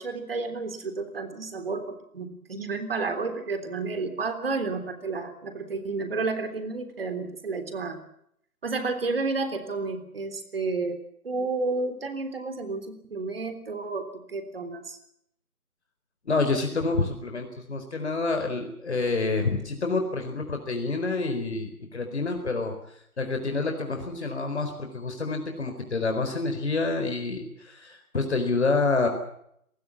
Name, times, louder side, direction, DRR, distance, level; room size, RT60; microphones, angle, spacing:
voice 1, 0.0-8.0 8.6-11.0 11.2-15.0, right 3 dB, 40° right, 9 dB, 3.5 m, -31 dB
voice 2, 16.3-22.7 23.2-29.1, left 3 dB, 45° left, 5 dB, 4.4 m, -28 dB
24.5 x 20.0 x 7.3 m, 0.72 s
figure-of-eight pair, 160°, 45 cm